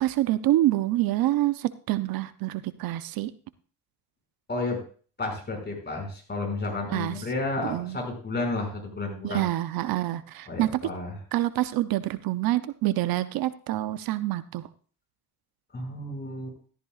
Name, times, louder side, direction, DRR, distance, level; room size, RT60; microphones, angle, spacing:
voice 1, 0.0-3.3 6.9-7.2 7.6-8.0 9.2-10.9 11.3-14.7, right 15 dB, 75° right, 13 dB, 0.7 m, -26 dB
voice 2, 5.2-9.5 10.5-11.1 15.7-16.6, left 2 dB, 30° left, 1 dB, 5.9 m, -31 dB
14.0 x 13.0 x 2.4 m, 0.41 s
cardioid pair, 95°, 35 cm